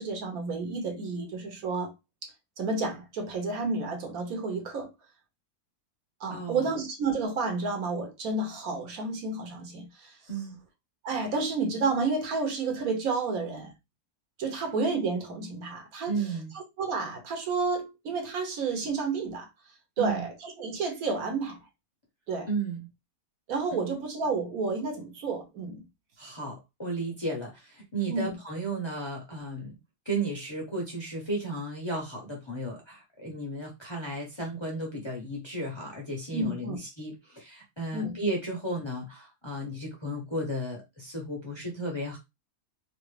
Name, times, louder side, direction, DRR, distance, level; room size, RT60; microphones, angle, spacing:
voice 1, 0.0-1.9 2.2-2.3 2.6-4.9 6.2-10.2 11.0-13.7 14.4-16.2 16.8-19.5 20.0-21.6 22.3-22.5 23.5-25.8 28.1-28.4 36.3-36.8 37.9-38.2, right 4 dB, 70° right, 1.3 m, -30 dB
voice 2, 6.3-6.6 10.3-10.6 16.1-16.5 20.0-20.3 22.5-22.9 23.7-23.9 26.2-29.8 30.1-42.2, right 2 dB, 30° left, 0.5 m, -34 dB
3.1 x 2.4 x 3.2 m
omnidirectional pair, 1.6 m